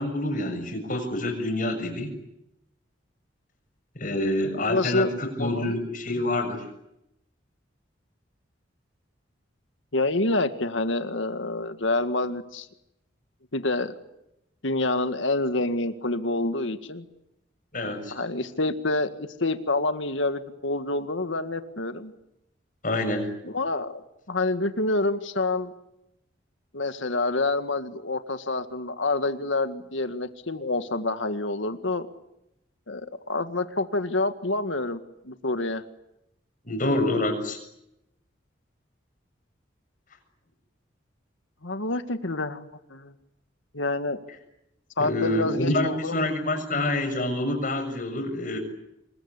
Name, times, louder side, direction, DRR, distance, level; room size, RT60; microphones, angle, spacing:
voice 1, 0.0-2.1 4.0-6.7 17.7-18.2 22.8-23.4 36.7-37.6 45.0-48.6, left 1 dB, 45° left, 6 dB, 6.9 m, -27 dB
voice 2, 4.6-5.1 5.4-5.7 9.9-12.7 13.5-13.9 14.6-17.0 17.8-22.1 23.4-24.0 24.3-25.7 26.7-32.1 32.9-35.0 35.3-35.8 41.6-43.1 43.7-44.2 45.0-46.2, left 2 dB, 80° left, 9 dB, 2.0 m, -27 dB
27.5 x 22.0 x 9.8 m, 0.85 s
head